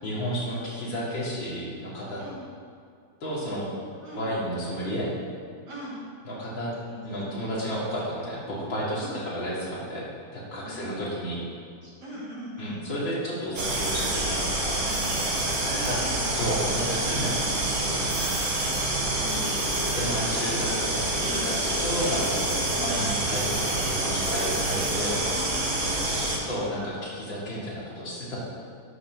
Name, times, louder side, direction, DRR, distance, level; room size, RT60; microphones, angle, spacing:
voice 1, 0.0-2.2 3.2-3.7 4.1-5.1 6.2-6.7 7.0-11.4 12.6-14.8 15.7-16.0 16.3-18.3 19.9-21.1 21.4-25.2 26.5-28.4, equal, 70° left, -6 dB, 3.4 m, -32 dB
voice 2, 5.7-6.0 6.9-7.6 9.0-9.2 10.6-11.3 11.8-12.8 14.8-16.4 18.2-18.7 19.0-19.8 21.2-21.5 22.7-23.0 25.0-26.6, right 1 dB, 55° right, -8 dB, 3.9 m, -41 dB
sound 1, 13.6-26.4, right 1 dB, 80° right, 2.7 m, -27 dB
12.0 x 6.1 x 6.4 m, 2.3 s
omnidirectional pair, 2.1 m